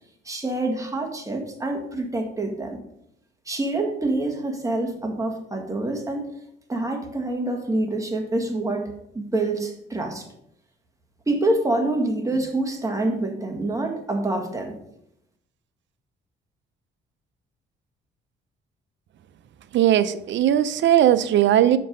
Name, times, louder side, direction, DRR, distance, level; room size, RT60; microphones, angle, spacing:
voice 1, 0.3-2.8 3.5-6.3 6.7-8.9 9.1-10.2 11.3-14.8, right 2 dB, 15° right, 2 dB, 1.8 m, -26 dB
voice 2, 19.7-21.8, right 11 dB, 65° right, 13 dB, 0.6 m, -18 dB
6.7 x 5.4 x 5.3 m, 0.76 s
cardioid pair, 90°, 20 cm